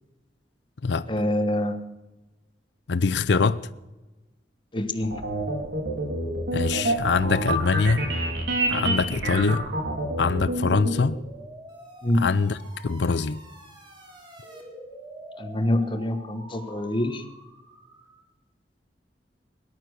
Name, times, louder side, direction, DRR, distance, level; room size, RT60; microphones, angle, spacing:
voice 1, 1.1-1.8 4.7-5.2 12.0-12.3 15.4-17.2, left 1 dB, 30° left, 1.2 m, -25 dB
voice 2, 2.9-3.6 6.5-8.1 8.7-9.7 10.2-11.2 12.1-12.6 12.8-13.4, left 4 dB, 75° left, 0.6 m, -23 dB
sound 1, 5.0-11.0, right 1 dB, 85° right, 3.6 m, -27 dB
sound 2, 10.8-18.3, right 1 dB, 25° right, 3.4 m, -46 dB
18.5 x 12.0 x 6.4 m
head